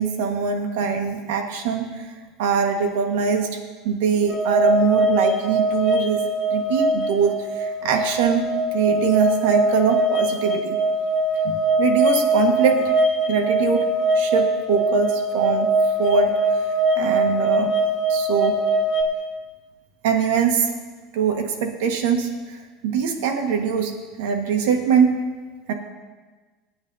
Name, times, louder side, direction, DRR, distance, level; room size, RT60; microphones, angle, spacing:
voice 1, 0.0-2.0 2.4-3.5 3.8-6.2 6.5-8.5 8.7-10.8 11.4-12.9 13.3-13.8 14.1-15.7 16.0-16.3 16.9-17.7 18.1-18.5 20.0-20.7 21.1-23.9 24.2-25.2 25.7-25.8, right 6 dB, 85° right, 4 dB, 1.5 m, -22 dB
sound 1, 4.3-19.0, right 2 dB, 30° left, 2.5 m, -22 dB
22.5 x 10.5 x 2.7 m, 1.3 s
supercardioid pair, 155°, 0 cm